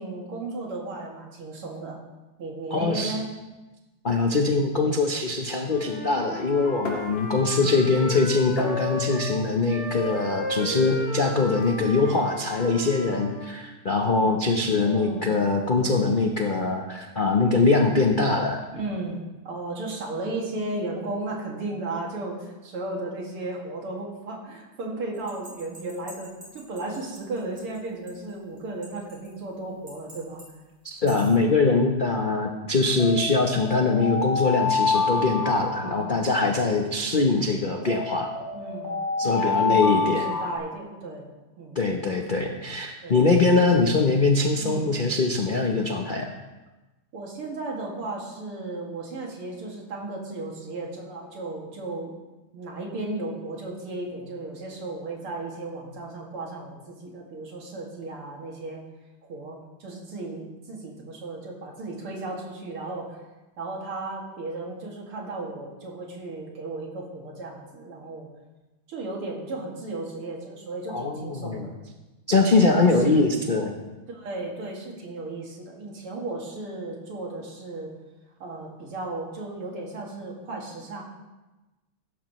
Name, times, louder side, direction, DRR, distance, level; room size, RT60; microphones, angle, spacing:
voice 1, 0.0-2.0 2.4-3.3 7.8-7.9 14.6-15.3 18.7-30.4 31.0-31.4 35.7-36.1 38.5-38.9 39.2-41.3 41.6-41.8 43.0-43.2 44.6-44.9 47.1-52.1 52.5-58.8 59.2-63.2 63.6-68.3 68.9-71.7 72.3-73.4 74.1-77.9 78.4-81.0, right 2 dB, 80° right, -1 dB, 3.1 m, -35 dB
voice 2, 2.7-3.2 4.0-18.6 30.8-38.3 39.2-40.3 41.7-46.3 70.9-71.7 72.3-73.8, left 3 dB, 80° left, 2 dB, 0.4 m, -22 dB
Wind instrument woodwind instrument, 5.6-9.4 9.7-13.5, equal, 35° left, 4.7 m, -34 dB
sound 1, 6.8-7.7 8.0-11.7, left 2 dB, 60° left, 2.8 m, -40 dB
sound 2, 25.3-27.2 27.6-27.7 28.1-28.2 28.8-29.3 29.9-30.4 30.9-31.3 33.0-36.8 37.9-40.6, left 4 dB, 45° right, 4.4 m, -28 dB
16.0 x 12.5 x 3.1 m, 1.1 s
omnidirectional pair, 2.4 m